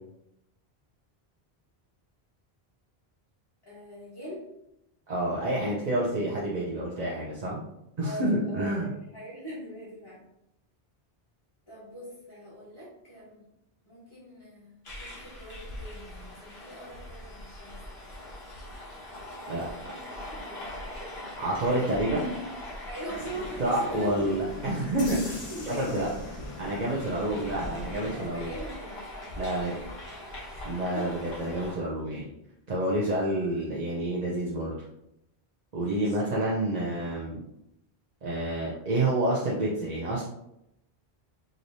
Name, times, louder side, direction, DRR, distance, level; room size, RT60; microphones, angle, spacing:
voice 1, 3.6-4.5 8.0-10.2 11.7-13.5 13.8-17.8 19.4-21.2 22.9-24.3 25.5-26.4 28.1-29.9 30.5-31.1 35.8-36.2, right 1 dB, 25° left, -11 dB, 1.4 m, -42 dB
voice 2, 5.1-7.6 8.0-8.9 19.5-19.7 21.4-22.3 23.6-26.1 26.6-28.5 29.4-29.8 30.6-32.3 32.7-34.7 35.7-37.4 38.2-40.3, right 1 dB, 45° right, -6 dB, 0.8 m, -28 dB
sound 1, 14.8-31.8, left 1 dB, 60° left, 1.4 m, -42 dB
sound 2, 23.1-28.3, left 2 dB, 45° left, 1.0 m, -41 dB
5.3 x 3.1 x 2.7 m, 0.83 s
omnidirectional pair, 1.0 m